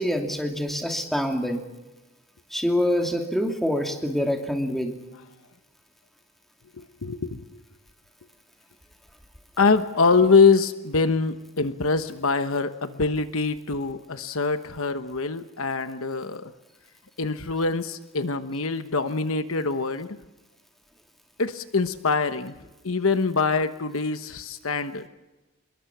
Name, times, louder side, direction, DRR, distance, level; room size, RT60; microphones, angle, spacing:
voice 1, 0.0-1.6 2.5-5.0, equal, ahead, 2 dB, 2.6 m, -25 dB
voice 2, 6.8-7.4 9.6-16.5 17.2-20.1 21.4-22.5 22.8-25.1, left 4 dB, 65° left, 10 dB, 1.1 m, -24 dB
26.5 x 22.0 x 6.1 m, 1.1 s
head